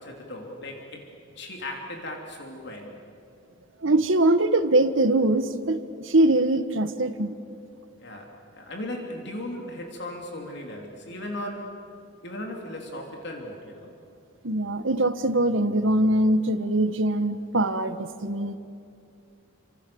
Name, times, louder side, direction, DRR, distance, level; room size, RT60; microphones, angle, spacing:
voice 1, 0.0-3.0 8.0-11.8 12.2-13.9, left 1 dB, 55° left, 2 dB, 3.3 m, -37 dB
voice 2, 3.8-7.4 14.4-18.6, right 1 dB, 70° right, 10 dB, 1.4 m, -22 dB
29.5 x 26.0 x 7.1 m, 2.6 s
head